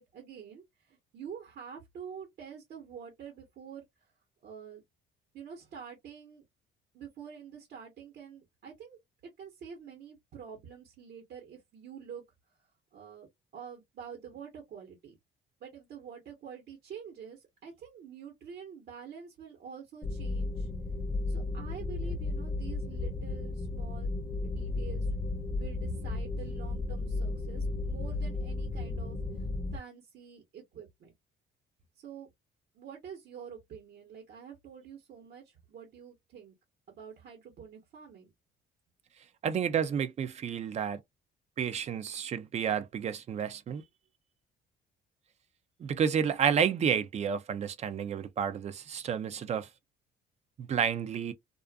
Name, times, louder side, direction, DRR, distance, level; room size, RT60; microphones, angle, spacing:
voice 1, 0.0-3.8 4.4-4.8 5.3-6.4 6.9-9.0 9.4-12.2 12.9-15.2 15.6-20.7 21.3-24.1 24.4-25.2 25.6-29.5 29.7-31.1 31.9-32.3 32.7-36.5 36.9-38.3, right 7 dB, 60° right, 1.0 m, -47 dB
sound 1, 20.0-29.8, left 2 dB, 15° left, 0.6 m, -34 dB
voice 2, 39.4-41.0 41.6-43.8 45.8-49.7 50.6-51.3, right 7 dB, 40° right, 0.5 m, -30 dB
2.5 x 2.4 x 2.3 m
cardioid pair, 110°, 17 cm